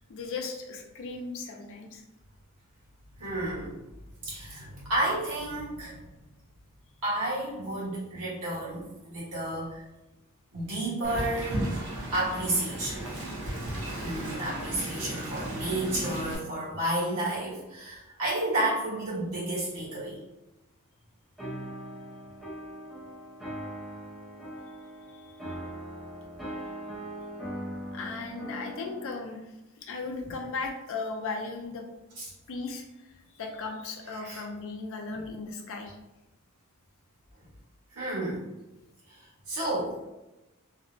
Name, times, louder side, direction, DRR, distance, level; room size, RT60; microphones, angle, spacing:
voice 1, 0.1-2.0 25.1-25.3 27.9-29.5 29.8-31.8 32.5-32.8 33.3-36.0, left 4 dB, 60° left, 2 dB, 0.4 m, -36 dB
voice 2, 3.2-3.7 4.2-6.1 7.0-9.8 10.5-13.0 14.0-20.2 32.2-32.3 34.2-34.4 37.9-38.5 39.1-39.2 39.5-40.0, right 1 dB, 85° right, -8 dB, 1.3 m, -31 dB
Wind, 11.0-16.3, right 1 dB, 60° right, 0.6 m, -35 dB
sound 1, 21.4-29.2, equal, ahead, 0.6 m, -40 dB
2.7 x 2.0 x 2.5 m, 0.97 s
head